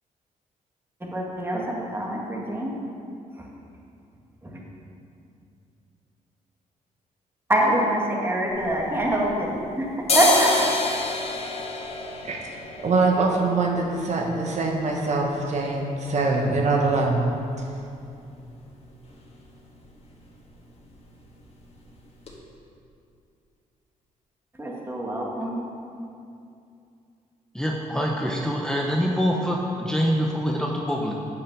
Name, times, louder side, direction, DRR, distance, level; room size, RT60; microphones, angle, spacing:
voice 1, 1.0-2.7 3.4-3.5 4.4-4.6 7.5-9.5 9.8-10.5 24.5-25.6, right 1 dB, 15° right, -2 dB, 1.8 m, -25 dB
sound 1, 8.5-9.6 9.9-17.6 17.9-18.0 18.3-18.9 19.2-19.4 19.7-19.9 20.2-20.9 21.2-21.4 21.9-22.0 22.3-22.4, left 2 dB, 45° left, 1.8 m, -29 dB
voice 2, 12.8-17.2, right 3 dB, 55° right, 0 dB, 1.2 m, -23 dB
voice 3, 27.5-31.1, equal, 5° left, -2 dB, 0.8 m, -25 dB
8.4 x 5.6 x 6.8 m, 2.6 s
cardioid pair, 90°, 14 cm